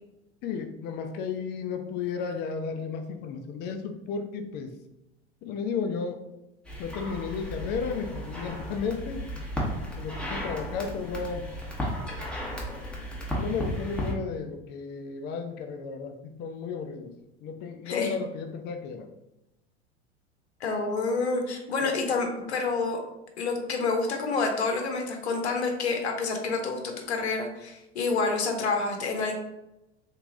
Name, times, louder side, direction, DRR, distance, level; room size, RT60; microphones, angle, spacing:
voice 1, 0.4-4.7 5.4-6.2 6.8-9.3 9.9-11.5 13.0-17.1 17.4-19.1 21.8-21.9, left 5 dB, 30° left, 6 dB, 0.4 m, -33 dB
sound 1, 6.6-14.1, equal, 5° left, 0.9 m, -34 dB
voice 2, 20.6-23.0 23.4-29.3, left 4 dB, 75° left, 3 dB, 0.7 m, -28 dB
3.6 x 2.8 x 2.6 m, 0.92 s
figure-of-eight pair, 80°, 33 cm